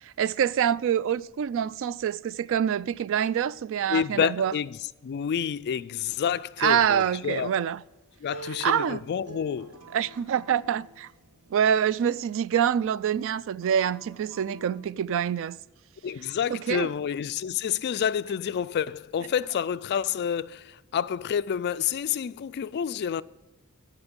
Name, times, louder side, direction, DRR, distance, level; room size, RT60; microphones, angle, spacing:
voice 1, 0.0-4.5 6.6-7.8 8.4-9.0 9.9-11.1 11.5-15.6 16.5-16.9, right 9 dB, 60° right, 0.3 m, -26 dB
voice 2, 3.9-7.5 8.2-9.8 16.0-23.2, left 8 dB, 50° left, 0.3 m, -29 dB
Acoustic guitar, 6.8-12.0 13.5-14.8, right 3 dB, 90° right, 1.8 m, -48 dB
15.0 x 5.7 x 5.2 m
head